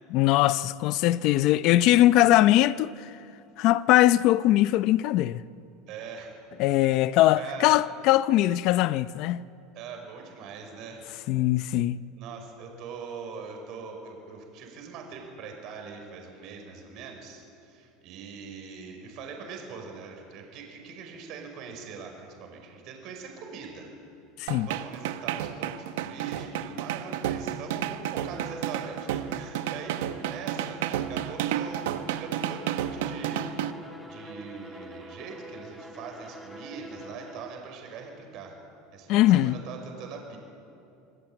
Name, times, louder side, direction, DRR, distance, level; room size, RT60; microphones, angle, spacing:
voice 1, 0.1-3.1 3.6-5.4 6.6-9.4 11.3-12.0 24.4-24.7 39.1-39.6, left 15 dB, 45° left, 0.6 m, -21 dB
voice 2, 5.9-6.4 6.9-7.1 7.3-7.8 9.8-11.1 12.1-23.9 24.6-33.5 34.1-38.6 38.9-40.4, right 5 dB, 40° right, 5.4 m, -42 dB
sound 1, 24.5-33.7, right 11 dB, 85° right, 1.3 m, -31 dB
Bowed string instrument, 28.2-37.7, equal, ahead, 2.5 m, -46 dB
26.5 x 22.0 x 9.0 m
supercardioid pair, 170°, 0 cm